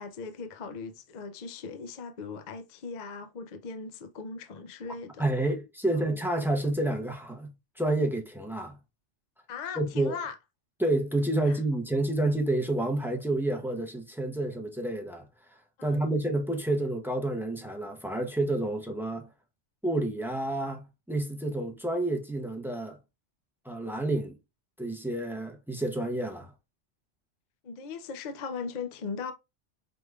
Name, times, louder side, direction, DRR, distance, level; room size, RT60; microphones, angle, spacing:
voice 1, 0.0-5.2 5.9-6.1 9.5-10.4 11.5-11.6 15.8-16.1 27.6-29.3, left 5 dB, 50° left, 0.5 m, -39 dB
voice 2, 5.2-8.8 9.8-10.2 10.8-15.2 15.8-19.3 19.8-23.0 23.6-24.4 24.8-26.5, right 1 dB, 5° right, 0.4 m, -29 dB
5.0 x 3.3 x 2.3 m
omnidirectional pair, 1.2 m